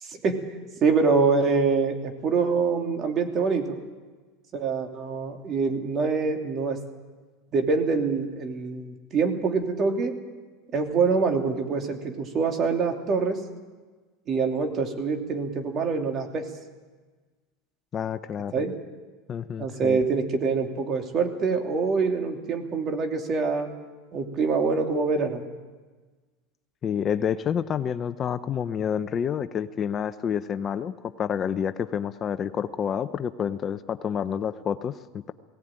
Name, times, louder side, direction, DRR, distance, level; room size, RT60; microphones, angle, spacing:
voice 1, 0.0-0.4 0.8-3.8 4.5-6.8 7.5-10.1 10.7-13.4 14.3-16.5 18.5-18.7 19.6-23.7 24.1-25.4, right 4 dB, 35° right, 4 dB, 2.8 m, -25 dB
voice 2, 17.9-18.6 19.3-20.0 26.8-35.3, left 8 dB, 30° left, 11 dB, 0.7 m, -29 dB
18.5 x 17.5 x 9.0 m, 1.4 s
supercardioid pair, 125°, 0 cm